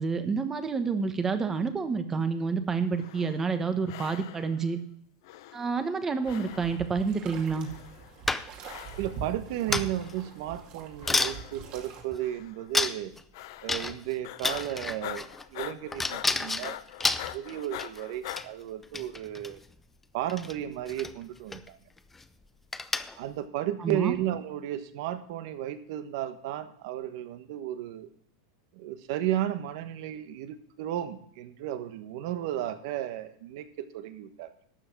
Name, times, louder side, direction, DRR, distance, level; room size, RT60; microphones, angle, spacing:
voice 1, 0.0-4.8 5.5-7.7 23.8-24.1, right 5 dB, 15° right, 9 dB, 1.1 m, -29 dB
sound 1, 2.9-3.6 3.9-4.7 5.2-6.0 6.2-7.0 7.6-8.2 8.6-9.3 9.9-10.5 11.0-11.8 12.2-12.7 13.3-14.0 14.2-18.4, left 14 dB, 60° left, 0.7 m, -43 dB
sound 2, 6.2-12.0, right 5 dB, 40° right, 2.3 m, -43 dB
sound 3, 8.3-8.8 9.7-10.1 10.6-10.7 11.1-11.4 12.1-12.2 12.7-13.2 13.7-14.1 14.4-15.4 15.9-18.0 18.3-18.5 18.8-19.5 20.3-20.5 20.9-21.1 21.5-21.7 22.0-22.2 22.7-23.2, left 3 dB, 10° left, 0.5 m, -30 dB
voice 2, 9.0-13.1 13.6-16.8 17.3-19.6 20.1-21.8 23.2-28.1 28.7-34.5, right 12 dB, 60° right, 10 dB, 1.3 m, -34 dB
12.0 x 7.3 x 6.0 m, 0.64 s
supercardioid pair, 145°, 2 cm